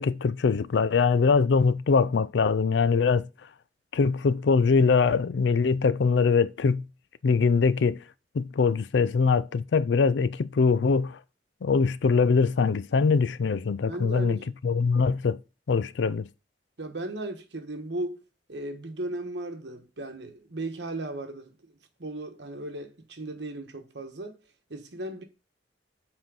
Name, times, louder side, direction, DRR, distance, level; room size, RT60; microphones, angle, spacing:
voice 1, 0.0-3.3 3.9-6.9 7.2-8.0 8.3-11.2 11.6-15.4 15.7-16.3, left 5 dB, 80° left, 0.4 m, -23 dB
voice 2, 13.9-14.5 16.8-18.2 18.5-21.7 22.0-24.4 24.7-25.2, right 1 dB, 70° right, 1.3 m, -36 dB
7.4 x 4.4 x 3.8 m
head